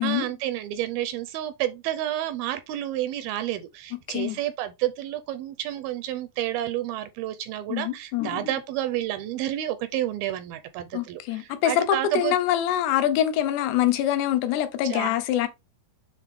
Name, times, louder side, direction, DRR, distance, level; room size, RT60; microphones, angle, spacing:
voice 1, 0.0-12.4 14.8-15.1, right 13 dB, 80° right, 2.2 m, -30 dB
voice 2, 7.7-8.5 10.9-15.5, left 11 dB, 85° left, 3.0 m, -25 dB
7.4 x 3.8 x 3.5 m
omnidirectional pair, 4.7 m